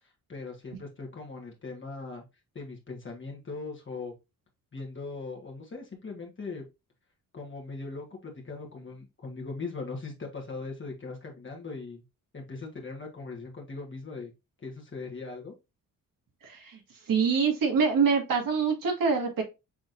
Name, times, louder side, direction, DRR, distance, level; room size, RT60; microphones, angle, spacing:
voice 1, 0.0-2.2 2.5-4.1 4.7-6.6 7.3-12.0 12.3-14.3 14.6-15.5, left 3 dB, 35° left, 0 dB, 1.5 m, -40 dB
voice 2, 16.4-16.8 17.1-19.4, right 5 dB, 70° right, 3 dB, 1.8 m, -25 dB
6.1 x 3.3 x 2.5 m, 0.24 s
cardioid pair, 85°, 35 cm